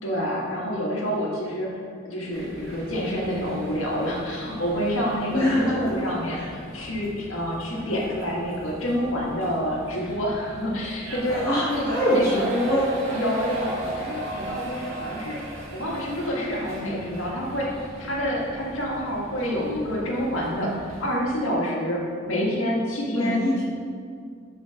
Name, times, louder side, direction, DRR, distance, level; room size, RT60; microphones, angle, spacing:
voice 1, 0.0-11.4 11.7-12.5 13.1-15.4 15.7-17.7 18.0-23.4, equal, 80° left, -3 dB, 1.8 m, -28 dB
sound 1, 2.3-21.2, right 1 dB, 80° right, 1.7 m, -38 dB
voice 2, 5.3-5.9 6.3-6.4 11.3-12.8 23.0-23.6, left 1 dB, 20° left, -11 dB, 1.4 m, -23 dB
6.4 x 5.0 x 5.8 m, 2.2 s
head